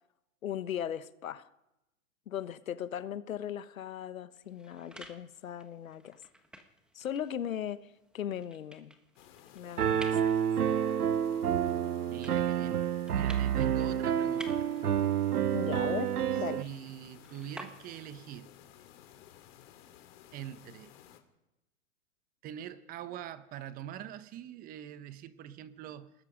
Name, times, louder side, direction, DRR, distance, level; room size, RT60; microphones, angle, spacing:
voice 1, 0.4-1.5 2.3-6.2 6.9-8.9 9.5-10.4 15.5-16.6, left 9 dB, 65° left, 1.3 m, -38 dB
sound 1, 4.3-18.2, right 1 dB, ahead, 1.4 m, -53 dB
sound 2, 9.2-21.2, left 11 dB, 40° left, 3.1 m, -56 dB
Piano, 9.8-16.6, right 9 dB, 90° right, 0.9 m, -29 dB
voice 2, 12.1-14.7 16.5-18.5 20.3-20.9 22.4-26.1, right 10 dB, 20° right, 1.1 m, -44 dB
28.0 x 19.5 x 5.2 m
hypercardioid pair, 135°, 44 cm